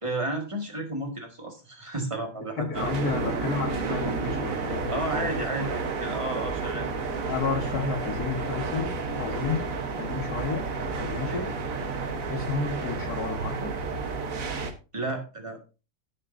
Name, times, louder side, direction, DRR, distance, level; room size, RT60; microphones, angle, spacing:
voice 1, 0.0-2.9 4.9-6.9 11.3-11.5 14.9-15.6, right 2 dB, 15° right, 3 dB, 1.8 m, -32 dB
voice 2, 2.6-5.3 5.6-5.8 7.3-9.7 10.0-10.7 11.0-11.6 12.3-13.7, left 4 dB, 55° left, 5 dB, 2.0 m, -31 dB
sound 1, 2.7-14.7, right 4 dB, 50° right, 1.5 m, -31 dB
16.5 x 6.6 x 2.7 m, 0.31 s
omnidirectional pair, 2.0 m